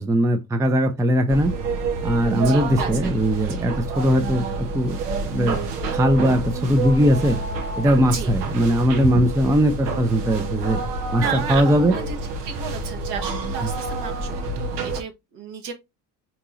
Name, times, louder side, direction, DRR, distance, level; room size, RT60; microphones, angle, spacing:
voice 1, 0.0-1.5 2.0-5.6 5.9-7.4 7.8-10.8 11.1-11.9 13.6-13.7, equal, 5° right, 0.5 m, -20 dB
sound 1, 1.3-15.0, right 3 dB, 80° right, 0.9 m, -28 dB
voice 2, 2.3-3.2 3.5-3.7 8.1-8.3 11.2-12.2 12.4-15.7, right 6 dB, 60° right, 1.2 m, -33 dB
4.5 x 2.9 x 2.5 m
hypercardioid pair, 55°, 47 cm